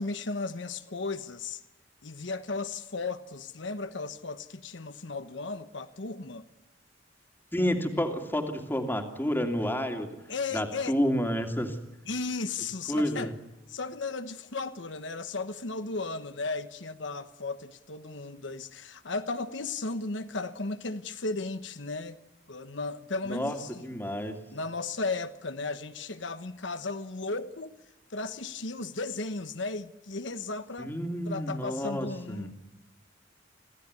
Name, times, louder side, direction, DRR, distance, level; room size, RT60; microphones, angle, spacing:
voice 1, 0.0-1.6 2.0-6.5 10.3-11.0 12.1-13.3 13.7-22.2 22.5-23.8 24.5-27.7 28.1-30.9 31.2-32.5, left 3 dB, 70° left, 1.2 m, -35 dB
voice 2, 7.5-10.2 10.5-11.8 12.9-13.3 23.3-24.4 30.8-32.5, equal, 10° left, 2.7 m, -30 dB
26.5 x 16.5 x 9.6 m
head